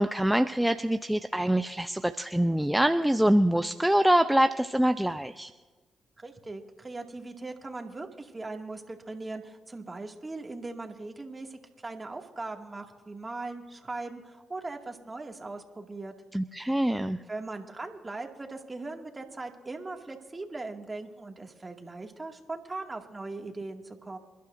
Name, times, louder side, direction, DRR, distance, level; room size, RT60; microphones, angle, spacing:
voice 1, 0.0-5.5 16.3-17.2, right 1 dB, 5° right, 9 dB, 0.6 m, -25 dB
voice 2, 6.2-16.1 17.3-24.2, right 3 dB, 30° right, 3 dB, 2.1 m, -39 dB
28.0 x 12.0 x 2.6 m, 1.3 s
hypercardioid pair, 45°, 0 cm